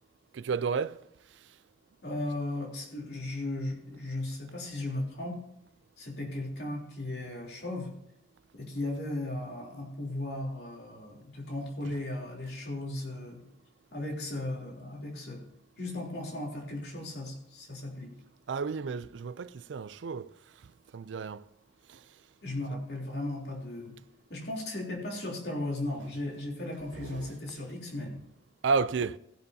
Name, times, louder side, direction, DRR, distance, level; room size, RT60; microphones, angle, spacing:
voice 1, 0.3-1.1 1.3-1.5 18.5-20.4 20.6-21.4 21.9-22.1 22.7-22.8 26.9-27.4 28.6-29.2, right 5 dB, 90° right, 0.4 m, -32 dB
voice 2, 2.0-5.4 6.0-7.9 8.5-13.4 13.9-15.4 15.8-18.1 22.4-23.9 24.3-28.2, left 1 dB, 65° left, 3.3 m, -36 dB
16.5 x 10.5 x 2.8 m
head